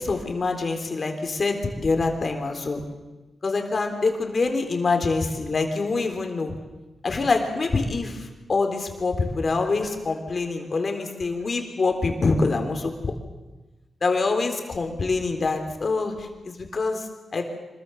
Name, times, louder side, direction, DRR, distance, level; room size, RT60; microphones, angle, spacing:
voice 1, 0.0-2.8 3.4-6.6 7.0-13.1 14.0-17.4, left 3 dB, 50° left, 5 dB, 3.7 m, -25 dB
26.0 x 22.5 x 7.2 m, 1.1 s
cardioid pair, 90°, 0 cm